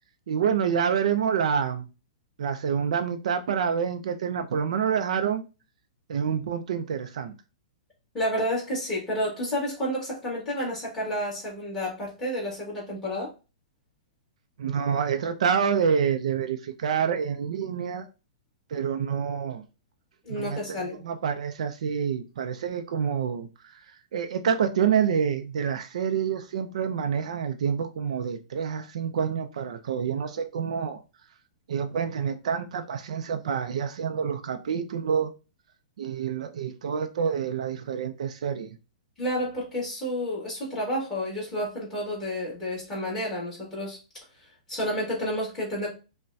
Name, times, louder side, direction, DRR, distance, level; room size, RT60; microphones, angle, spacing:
voice 1, 0.3-1.9 2.4-5.4 6.1-7.3 14.6-18.1 18.7-19.6 20.3-23.5 24.1-31.0 31.7-35.3 36.0-38.8, right 7 dB, 60° right, 0.5 m, -27 dB
voice 2, 8.1-13.3 20.3-20.9 39.2-44.0 44.7-45.9, equal, 10° left, 1.7 m, -30 dB
5.4 x 2.1 x 2.6 m
hypercardioid pair, 175°, 4 cm